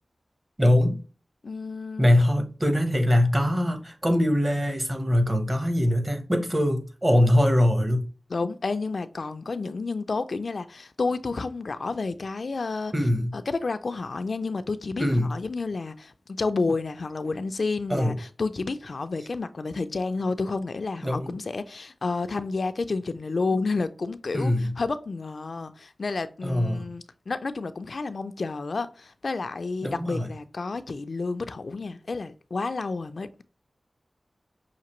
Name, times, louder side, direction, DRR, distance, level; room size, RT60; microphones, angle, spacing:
voice 1, 0.6-1.0 2.0-8.1 12.9-13.3 15.0-15.3 17.9-18.2 21.0-21.3 24.3-24.8 26.4-26.9 29.8-30.3, left 1 dB, 30° right, 0.9 m, -22 dB
voice 2, 1.4-2.1 8.3-12.9 13.3-33.4, left 3 dB, 70° left, 0.3 m, -30 dB
5.8 x 2.6 x 3.0 m
wide cardioid pair, 70°, 0 cm